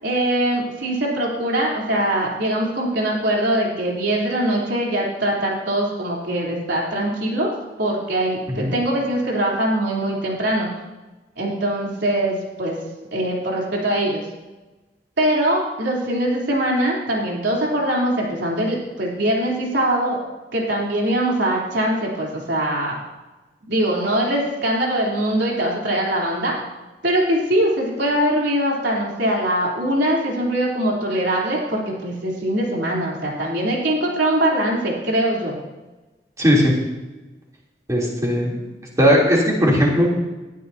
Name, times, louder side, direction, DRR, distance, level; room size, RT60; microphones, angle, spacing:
voice 1, 0.0-7.5 7.8-10.7 11.4-12.8 13.1-14.2 15.2-20.2 20.5-23.0 23.7-26.6 27.0-35.6, right 1 dB, 90° right, -3 dB, 3.5 m, -22 dB
voice 2, 36.4-36.7 37.9-38.6 39.0-40.1, equal, 20° right, -4 dB, 3.2 m, -17 dB
19.0 x 12.5 x 2.8 m, 1.1 s
head